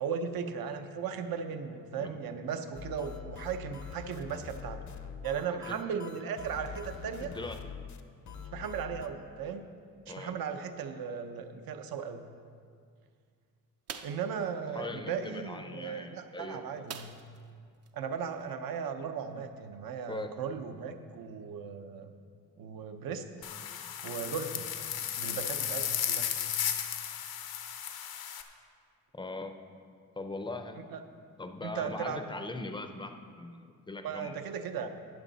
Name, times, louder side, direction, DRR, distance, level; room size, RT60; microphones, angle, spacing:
voice 1, 0.0-4.8 5.2-7.3 8.5-9.6 10.1-12.3 14.0-17.1 17.9-22.1 22.6-23.2 24.0-24.7 25.2-26.3 30.9-31.0 31.6-32.2 34.0-34.9, right 6 dB, 75° right, 7 dB, 0.8 m, -37 dB
sound 1, 2.7-9.1, left 7 dB, 55° left, 0.6 m, -44 dB
voice 2, 5.5-5.8 7.2-7.6 10.1-10.3 14.7-16.8 20.1-20.3 29.1-29.5 30.2-30.8 31.4-34.4, left 2 dB, 15° left, 6 dB, 0.5 m, -40 dB
sound 2, 13.9-14.3 16.9-17.5 17.8-17.9 18.3-18.5, right 7 dB, 45° right, 0.5 m, -43 dB
sound 3, 23.4-28.4, left 9 dB, 85° left, 0.9 m, -34 dB
13.5 x 9.1 x 4.1 m, 2.2 s
wide cardioid pair, 170°, 36 cm